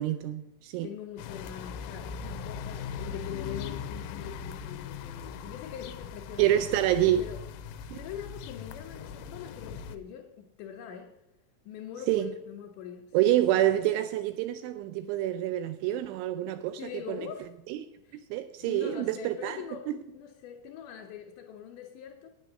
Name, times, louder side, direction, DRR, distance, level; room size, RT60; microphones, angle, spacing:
voice 1, 0.0-0.9 6.4-7.2 7.9-8.0 12.1-12.3 13.1-16.8 17.1-17.2 17.7-17.8 18.1-19.6 19.9-20.0, right 12 dB, 85° right, 2.7 m, -27 dB
voice 2, 0.8-7.4 8.0-11.1 11.6-13.2 13.5-13.9 16.8-17.5 18.0-18.2 18.6-22.3, left 9 dB, 70° left, 3.4 m, -43 dB
sound 1, 1.2-10.0, left 6 dB, 85° left, 3.1 m, -40 dB
9.7 x 9.7 x 6.4 m
omnidirectional pair, 6.0 m